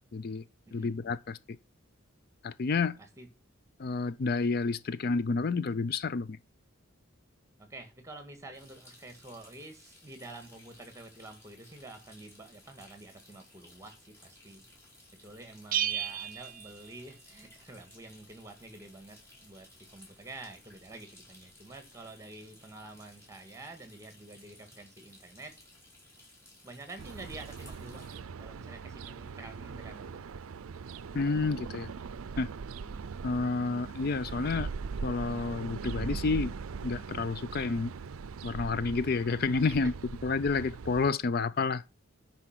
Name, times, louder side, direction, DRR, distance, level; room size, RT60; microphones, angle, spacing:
voice 1, 0.1-0.4 0.7-1.4 2.4-3.0 3.8-6.4 31.1-31.9 32.4-32.5 33.2-34.7 35.0-36.5 36.8-37.9 38.4-39.9 40.2-41.8, left 4 dB, 45° left, 0.4 m, -30 dB
voice 2, 7.6-14.6 15.2-19.7 19.9-25.5 26.6-30.2 32.8-33.1 40.5-40.6, right 2 dB, 15° right, 1.8 m, -48 dB
sound 1, 8.5-28.2, left 1 dB, 10° left, 5.0 m, -58 dB
Bell, 15.7-17.5, right 10 dB, 40° right, 0.7 m, -34 dB
sound 2, 27.0-41.1, right 5 dB, 85° right, 0.5 m, -40 dB
9.8 x 5.7 x 6.0 m
head